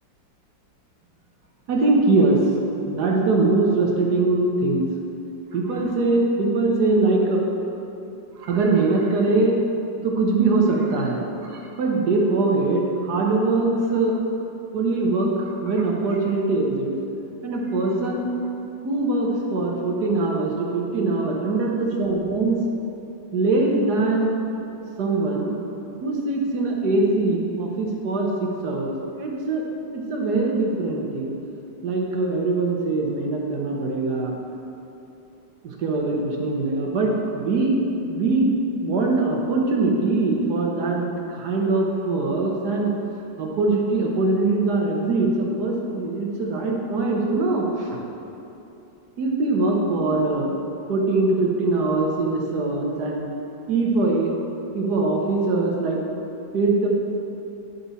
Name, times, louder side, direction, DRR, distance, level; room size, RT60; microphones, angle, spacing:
voice 1, 1.7-2.4 2.9-4.8 5.5-7.4 8.4-9.6 10.0-14.2 14.7-16.9 17.4-18.3 18.8-22.6 23.3-24.4 25.0-25.5 26.0-29.6 29.9-31.3 31.8-34.3 35.6-42.9 43.4-48.0 49.2-50.5 50.9-53.3 53.7-54.3 54.7-56.0 56.5-56.9, right 3 dB, 60° right, -1 dB, 1.5 m, -22 dB
10.0 x 5.4 x 4.1 m, 2.9 s
omnidirectional pair, 2.0 m